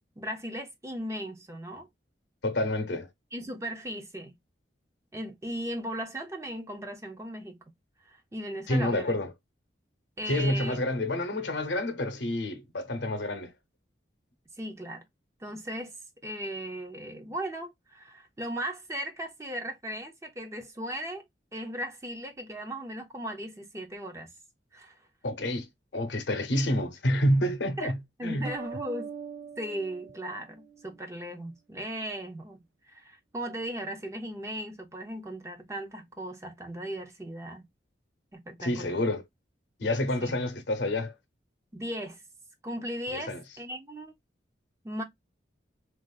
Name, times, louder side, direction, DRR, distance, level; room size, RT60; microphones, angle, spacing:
voice 1, 0.2-1.9 3.3-4.4 5.1-7.6 8.0-9.2 10.2-10.8 14.6-15.0 15.4-15.9 16.2-21.2 21.5-24.3 24.7-25.0 27.8-27.9 28.2-29.1 29.6-32.6 32.8-37.6 38.3-39.0 40.2-40.4 41.7-42.2 42.6-44.1 44.8-45.0, equal, 15° right, 0.5 m, -37 dB
voice 2, 2.4-3.1 8.7-9.3 10.3-13.5 25.2-25.7 25.9-28.0 28.2-28.5 38.6-39.2 39.8-41.1 43.1-43.4, left 1 dB, 75° left, 0.7 m, -28 dB
sound 1, 28.4-31.1, right 6 dB, 70° right, 0.8 m, -42 dB
3.5 x 2.4 x 2.2 m
head